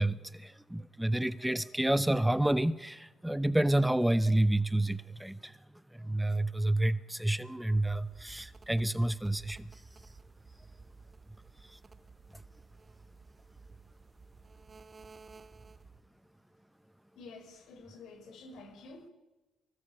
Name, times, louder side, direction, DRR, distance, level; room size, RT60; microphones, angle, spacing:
voice 1, 0.0-5.6 5.9-9.8 11.6-11.8 12.3-12.4, right 1 dB, 5° right, 0.8 m, -29 dB
sound 1, 7.7-16.1, right 4 dB, 35° right, 2.2 m, -54 dB
voice 2, 17.1-19.1, left 3 dB, 75° left, 5.7 m, -50 dB
24.5 x 19.5 x 8.7 m
cardioid pair, 90°, 0 cm